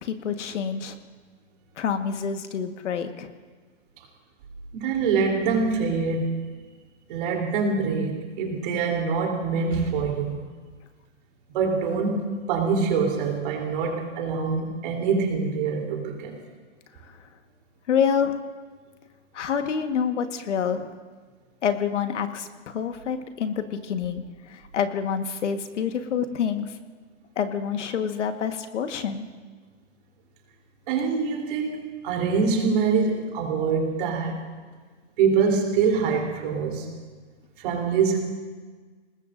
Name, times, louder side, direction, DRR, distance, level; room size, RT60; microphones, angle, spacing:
voice 1, 0.0-0.9 1.8-3.3 17.9-18.4 19.3-20.9 21.6-26.7 27.4-29.3, left 7 dB, 70° left, 7 dB, 1.6 m, -27 dB
voice 2, 4.7-6.3 7.1-10.4 11.5-16.4 30.9-34.4 35.2-36.9 37.6-38.2, right 5 dB, 45° right, 0 dB, 3.5 m, -24 dB
27.5 x 20.0 x 2.6 m, 1.5 s
hypercardioid pair, 150°, 37 cm